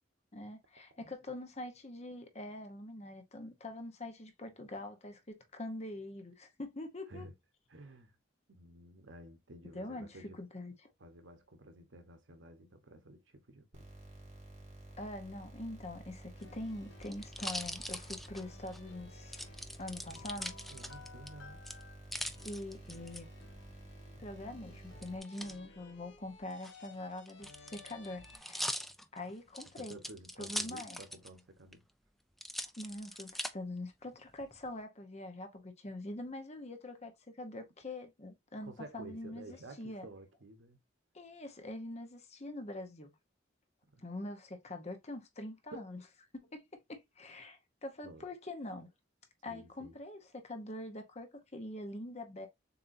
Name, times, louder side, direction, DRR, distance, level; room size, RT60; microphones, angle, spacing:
voice 1, 0.3-7.3 9.7-10.7 15.0-20.5 22.4-23.3 24.2-28.8 29.1-30.0 30.4-31.0 32.8-40.0 41.1-43.1 44.0-46.0 46.3-48.9 49.4-52.5, left 1 dB, 35° left, 0.9 m, -44 dB
voice 2, 7.7-8.2 8.5-10.4 11.0-13.9 20.1-20.4 20.7-21.6 28.3-28.4 29.8-31.9 38.6-40.8 43.9-44.0 45.7-45.9 48.0-48.2 49.4-50.0, right 1 dB, 90° right, 1.1 m, -52 dB
sound 1, 13.7-25.2, right 1 dB, 35° right, 2.4 m, -52 dB
sound 2, 16.3-18.8 19.3-21.3 21.6-23.2 25.0-25.5 26.5-31.4 31.7-31.8 32.4-33.5 34.1-34.7, equal, ahead, 0.4 m, -42 dB
sound 3, 16.4-28.4, left 4 dB, 75° left, 1.0 m, -57 dB
6.9 x 2.8 x 2.6 m
head